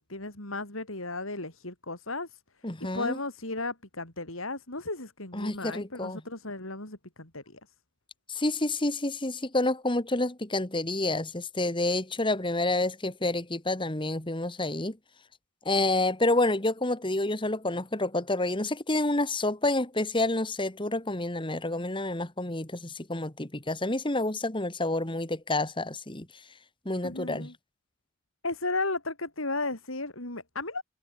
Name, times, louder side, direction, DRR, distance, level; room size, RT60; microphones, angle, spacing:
voice 1, 0.1-2.4 2.8-7.6 27.0-27.5 28.4-30.8, left 2 dB, 75° left, 6.1 m, -35 dB
voice 2, 2.6-3.2 5.3-6.2 8.3-15.0 15.7-26.3 26.9-27.5, left 2 dB, 25° left, 2.0 m, -29 dB
head